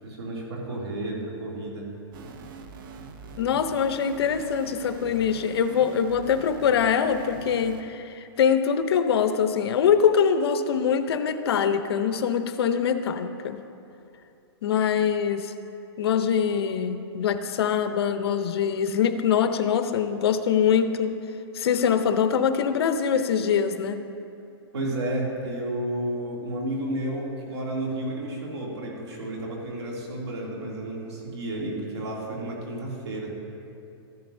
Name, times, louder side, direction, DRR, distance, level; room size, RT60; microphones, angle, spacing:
voice 1, 0.0-1.9 24.7-33.3, right 1 dB, 90° right, -3 dB, 2.8 m, -32 dB
sound 1, 2.1-7.8, right 4 dB, 50° right, 0.7 m, -43 dB
voice 2, 3.4-13.6 14.6-15.5 16.0-21.2 21.5-24.0, left 7 dB, 70° left, 9 dB, 0.7 m, -23 dB
13.5 x 11.0 x 2.7 m, 2.7 s
hypercardioid pair, 155°, 14 cm